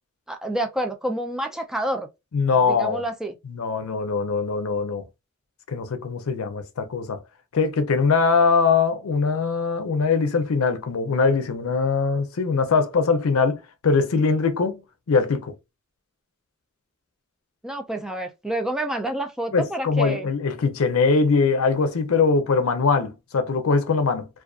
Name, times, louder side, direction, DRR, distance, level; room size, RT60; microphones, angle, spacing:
voice 1, 0.3-2.1 2.5-3.3 17.6-20.3, right 1 dB, 5° right, 0.3 m, -28 dB
voice 2, 2.3-3.0 3.5-5.1 5.7-7.2 7.5-14.8 15.1-15.5 19.5-24.3, left 4 dB, 80° left, 0.5 m, -22 dB
2.4 x 2.4 x 2.3 m
head